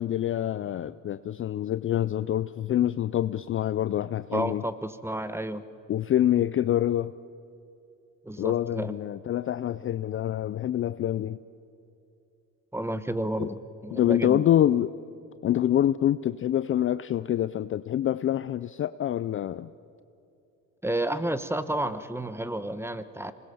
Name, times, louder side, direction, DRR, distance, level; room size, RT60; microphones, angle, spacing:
voice 1, 0.0-4.6 5.9-7.1 8.4-11.4 13.4-13.5 13.9-14.9 15.4-19.7, left 11 dB, 35° left, 0.5 m, -26 dB
voice 2, 4.3-5.6 8.2-8.9 12.7-13.6 13.8-14.4 20.8-23.3, right 1 dB, 5° right, 1.2 m, -31 dB
26.5 x 20.5 x 7.1 m
supercardioid pair, 85°, 36 cm